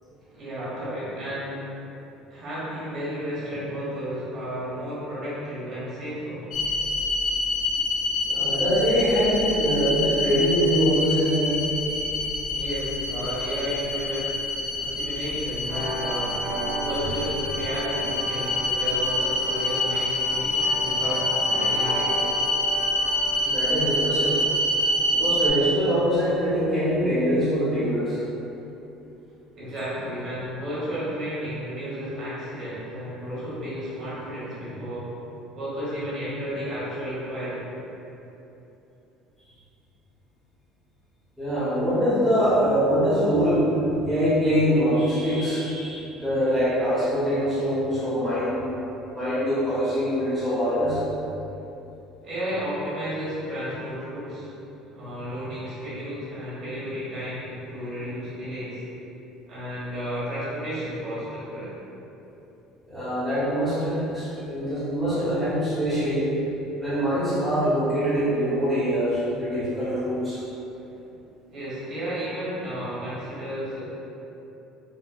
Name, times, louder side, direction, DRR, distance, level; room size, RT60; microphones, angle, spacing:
voice 1, 0.2-1.7 2.3-6.5 12.4-14.5 14.8-16.4 16.8-22.2 29.5-35.1 35.5-37.6 52.2-54.5 54.9-58.8 59.5-61.7 71.5-73.8, equal, 45° right, -10 dB, 1.3 m, -32 dB
sound 1, 6.5-25.5, left 1 dB, 45° left, 0.4 m, -26 dB
voice 2, 8.3-11.7 23.4-24.4 25.1-28.2 41.4-48.6 49.1-51.0 62.9-66.3 66.8-70.4, equal, ahead, -13 dB, 1.0 m, -23 dB
sound 2, 15.6-25.2, right 1 dB, 15° right, 1.2 m, -34 dB
4.1 x 2.5 x 2.4 m, 2.9 s
cardioid pair, 160°, 0 cm